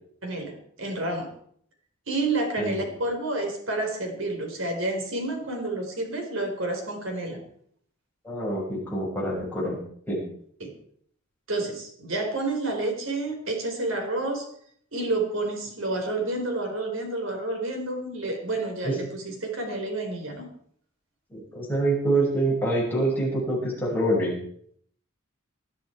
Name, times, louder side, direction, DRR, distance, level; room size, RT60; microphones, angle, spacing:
voice 1, 0.2-1.3 2.1-7.4 10.6-10.7 11.5-14.5 14.9-20.5, right 2 dB, 80° right, 3 dB, 4.5 m, -29 dB
voice 2, 8.2-9.8 10.1-10.2 18.8-18.9 21.3-24.3, right 1 dB, 10° left, -4 dB, 5.8 m, -26 dB
20.0 x 11.5 x 4.7 m, 0.63 s
head